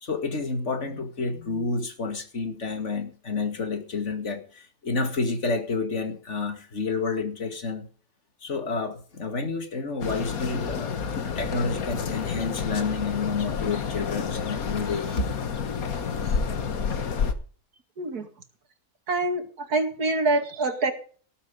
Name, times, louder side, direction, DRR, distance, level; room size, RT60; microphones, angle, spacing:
voice 1, 0.0-7.9 8.4-15.3, left 4 dB, 50° left, 7 dB, 2.4 m, -30 dB
sound 1, 10.0-17.3, left 6 dB, 70° left, 1.8 m, -29 dB
voice 2, 18.0-18.3 19.1-20.9, right 2 dB, 85° right, 7 dB, 2.7 m, -25 dB
18.5 x 8.4 x 5.2 m, 0.42 s
omnidirectional pair, 1.6 m